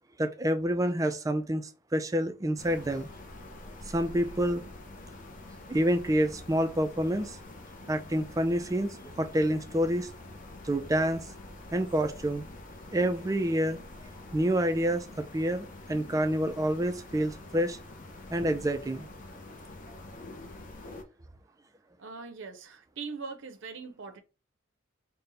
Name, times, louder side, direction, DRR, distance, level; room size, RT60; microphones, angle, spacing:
voice 1, 0.2-3.1 3.8-4.6 5.7-7.4 7.9-10.1 10.6-11.3 11.7-12.4 12.9-13.8 14.3-17.8 18.3-19.1, equal, 15° right, 0.3 m, -28 dB
sound 1, 2.6-21.0, left 2 dB, 40° left, 0.6 m, -46 dB
voice 2, 22.0-24.2, right 4 dB, 65° right, 0.6 m, -41 dB
4.0 x 2.1 x 3.9 m
head